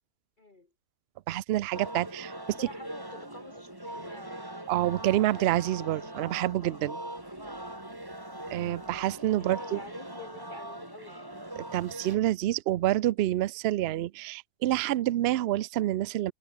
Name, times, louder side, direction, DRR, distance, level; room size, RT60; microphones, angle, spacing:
voice 1, 0.4-0.7 2.4-4.4 9.4-11.2, left 2 dB, 30° left, 2.3 m, -48 dB
voice 2, 1.3-2.7 4.7-7.0 8.5-9.8 11.6-16.3, right 14 dB, 90° right, 0.5 m, -28 dB
sound 1, 1.7-12.2, right 1 dB, 15° right, 3.4 m, -41 dB
sound 2, 7.1-9.3, right 2 dB, 50° right, 5.8 m, -63 dB
omnidirectional pair, 1.6 m